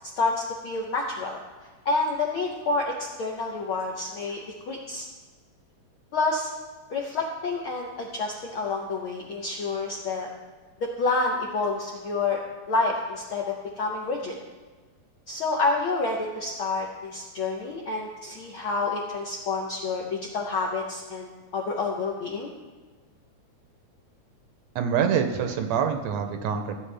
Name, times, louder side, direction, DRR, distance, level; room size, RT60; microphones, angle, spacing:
voice 1, 0.2-1.4 1.8-4.4 4.7-5.0 6.1-6.5 6.9-10.3 11.0-12.4 12.7-14.4 15.3-22.5, left 3 dB, 70° left, 0 dB, 1.2 m, -28 dB
voice 2, 24.7-26.8, right 7 dB, 75° right, 6 dB, 1.8 m, -25 dB
15.5 x 7.8 x 3.4 m, 1.4 s
omnidirectional pair, 3.4 m